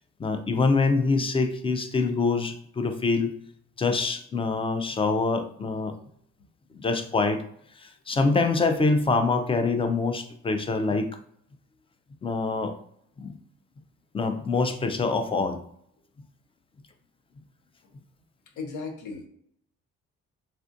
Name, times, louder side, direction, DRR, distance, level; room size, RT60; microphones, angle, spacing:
voice 1, 0.2-3.3 3.8-6.0 6.8-7.4 7.8-11.1 12.2-12.7 13.2-13.3 14.1-15.6, left 3 dB, 20° left, 8 dB, 0.4 m, -25 dB
voice 2, 18.6-19.3, left 4 dB, 80° left, 4 dB, 0.7 m, -36 dB
3.3 x 2.4 x 2.5 m, 0.66 s
cardioid pair, 90°, 30 cm